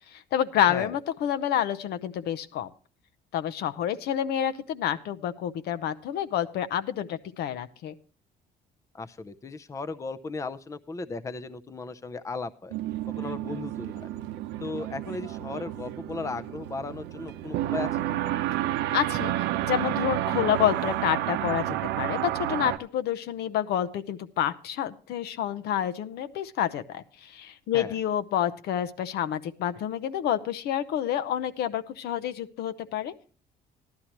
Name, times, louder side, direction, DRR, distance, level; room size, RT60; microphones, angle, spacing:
voice 1, 0.1-2.7 3.3-7.9 18.9-33.1, left 10 dB, 75° left, 12 dB, 0.8 m, -28 dB
voice 2, 8.9-12.7 13.2-14.1 14.6-18.2 27.7-27.9, left 3 dB, 20° left, 12 dB, 0.5 m, -36 dB
sound 1, 12.7-22.8, right 14 dB, 80° right, 0.7 m, -30 dB
14.0 x 11.5 x 3.0 m, 0.40 s
cardioid pair, 110°, 17 cm